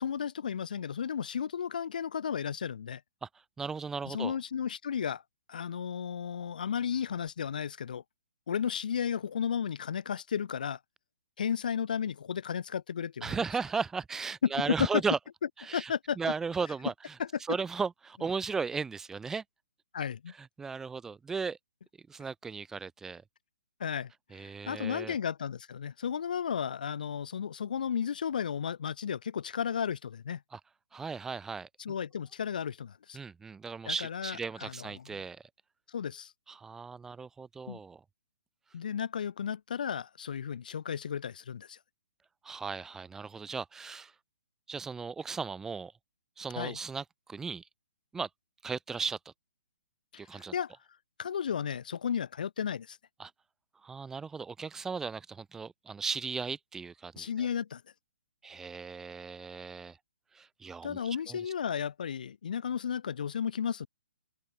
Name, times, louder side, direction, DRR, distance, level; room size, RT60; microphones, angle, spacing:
voice 1, 0.0-3.0 4.0-5.2 5.5-8.0 8.5-10.8 11.4-13.3 14.4-14.5 15.7-16.2 17.2-17.3 19.9-20.3 23.8-30.4 31.8-33.2 33.8-35.2 35.9-36.3 37.7-37.8 38.7-41.8 46.6-46.8 50.1-50.7 51.2-53.0 57.2-57.8 60.8-63.9, left 7 dB, 55° left, 2.9 m, -34 dB
voice 2, 3.6-4.4 13.2-15.2 15.6-17.1 17.4-19.4 20.4-21.6 22.1-23.2 24.3-25.2 30.5-30.6 30.9-31.7 33.1-35.5 36.5-38.0 42.4-44.1 44.7-45.9 46.4-47.7 48.1-48.3 48.6-49.3 50.2-50.5 53.2-53.3 53.8-57.5 58.4-60.0 60.3-61.4, right 5 dB, 10° right, 4.3 m, -36 dB
open air
figure-of-eight pair, 130°, 5 cm